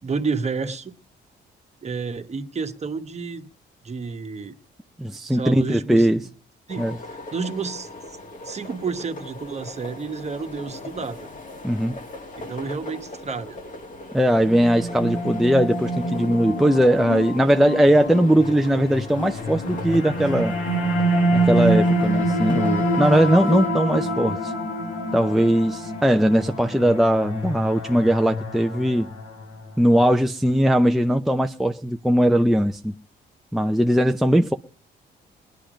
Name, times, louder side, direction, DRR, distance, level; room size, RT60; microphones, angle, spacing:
voice 1, 0.0-0.9 1.8-3.5 3.8-4.5 5.3-6.1 6.7-7.9 8.4-11.3 12.4-13.6, right 5 dB, 35° right, 1.3 m, -30 dB
voice 2, 5.0-6.2 6.8-7.0 11.6-12.0 14.1-20.6 21.3-24.5 25.1-29.1 29.8-32.9 33.5-34.5, equal, ahead, 0.6 m, -19 dB
sound 1, 6.7-23.7, left 2 dB, 40° left, 1.9 m, -39 dB
sound 2, 14.4-29.7, right 1 dB, 85° left, 2.5 m, -26 dB
20.0 x 10.5 x 5.1 m
cardioid pair, 90°, 20 cm